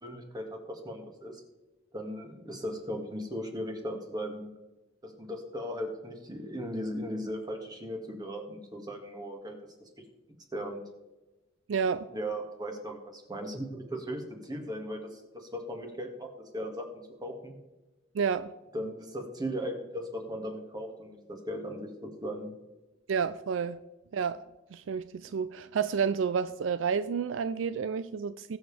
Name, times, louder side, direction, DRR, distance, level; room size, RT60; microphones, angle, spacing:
voice 1, 0.0-1.4 1.9-4.5 5.0-9.6 10.5-10.8 12.1-16.9 17.2-17.6 18.7-22.5, equal, 20° right, 1.9 m, -37 dB
voice 2, 11.7-12.1 18.1-18.5 23.1-23.8 24.1-24.4 24.7-28.6, right 6 dB, 75° right, 0.4 m, -30 dB
21.5 x 7.2 x 3.4 m
head